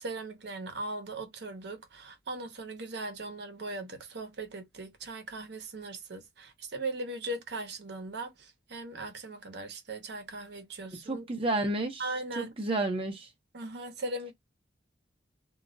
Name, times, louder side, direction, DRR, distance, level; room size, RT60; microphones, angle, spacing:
voice 1, 0.0-11.2 12.0-12.5 13.5-14.3, right 2 dB, 65° right, 0.8 m, -39 dB
voice 2, 11.1-12.0 12.4-13.3, right 2 dB, 30° right, 0.6 m, -30 dB
2.3 x 2.0 x 3.8 m
head